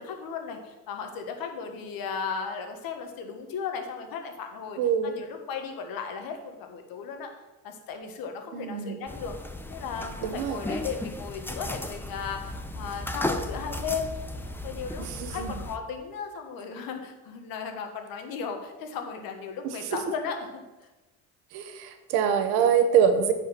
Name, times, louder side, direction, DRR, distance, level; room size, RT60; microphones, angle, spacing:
voice 1, 0.0-4.8 5.0-7.3 7.6-9.3 9.7-14.1 14.6-20.6, left 6 dB, 70° left, 5 dB, 1.5 m, -36 dB
voice 2, 4.8-5.1 8.5-9.0 10.2-10.6 15.0-15.6 19.6-19.9 21.5-23.3, right 7 dB, 85° right, 8 dB, 1.1 m, -25 dB
sound 1, 9.1-15.8, left 1 dB, 5° left, 0.7 m, -35 dB
9.3 x 4.9 x 5.7 m, 1.1 s
supercardioid pair, 95°, 37 cm